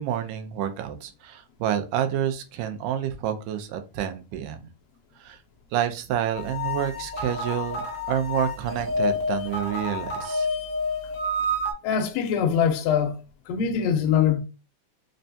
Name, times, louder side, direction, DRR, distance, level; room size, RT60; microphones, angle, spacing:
voice 1, 0.0-4.6 5.2-5.4 5.7-10.5, right 10 dB, 85° right, 2.0 m, -29 dB
sound 1, 6.3-11.7, left 2 dB, 55° left, 0.4 m, -29 dB
voice 2, 11.8-13.1 13.5-14.4, left 8 dB, 85° left, 1.5 m, -23 dB
5.1 x 2.2 x 2.6 m
omnidirectional pair, 3.6 m